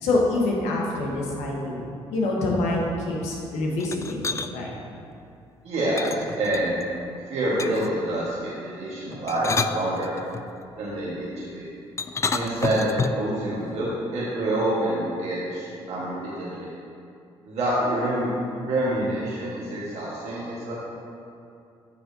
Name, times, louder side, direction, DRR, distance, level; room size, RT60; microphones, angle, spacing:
voice 1, 0.0-4.7, left 2 dB, 90° left, -2 dB, 1.3 m, -26 dB
sound 1, 3.8-4.5 6.0-6.9 7.6-8.0 9.1-10.5 12.0-13.3, left 4 dB, 25° left, 0.3 m, -29 dB
voice 2, 5.6-6.7 7.3-10.2 10.8-11.7 12.3-13.9 14.1-16.7 17.4-18.3 18.6-20.7, right 1 dB, 75° right, -7 dB, 1.5 m, -27 dB
9.0 x 6.3 x 2.8 m, 2.5 s
supercardioid pair, 70°, 11 cm